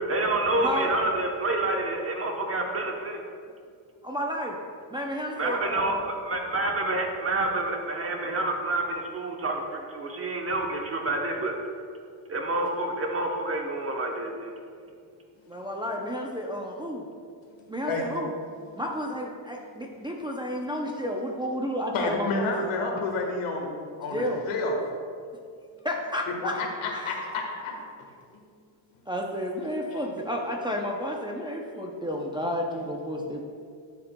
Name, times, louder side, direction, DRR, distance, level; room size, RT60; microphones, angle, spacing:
voice 1, 0.0-3.2 5.4-11.6 12.3-14.5, right 2 dB, 30° right, 2 dB, 0.9 m, -28 dB
voice 2, 0.5-0.9 4.0-4.6 4.9-6.0 15.5-17.1 17.7-18.3 18.8-22.7 24.1-24.4 25.8-26.6 26.9-27.3 29.1-33.4, equal, 10° right, -1 dB, 0.5 m, -31 dB
voice 3, 17.6-18.1 21.9-23.7 24.0-24.7 26.6-28.4 29.9-30.0, left 3 dB, 85° left, 1 dB, 1.6 m, -30 dB
12.0 x 6.8 x 2.2 m, 2.3 s
cardioid pair, 140°, 48 cm